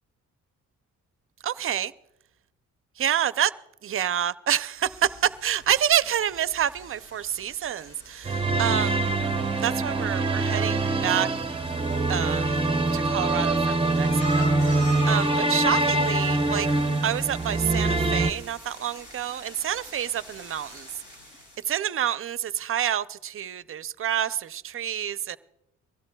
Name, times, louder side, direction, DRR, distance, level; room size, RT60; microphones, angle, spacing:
voice 1, 1.4-1.9 3.0-3.5 3.8-9.1 9.6-11.3 12.1-12.6 12.9-16.7 17.0-20.9 21.7-25.4, right 10 dB, 45° right, 0.5 m, -28 dB
sound 1, 4.8-21.8, right 1 dB, 85° left, 5.4 m, -43 dB
sound 2, 8.3-18.3, right 2 dB, 20° right, 0.8 m, -24 dB
22.5 x 16.5 x 2.3 m
cardioid pair, 90°, 30 cm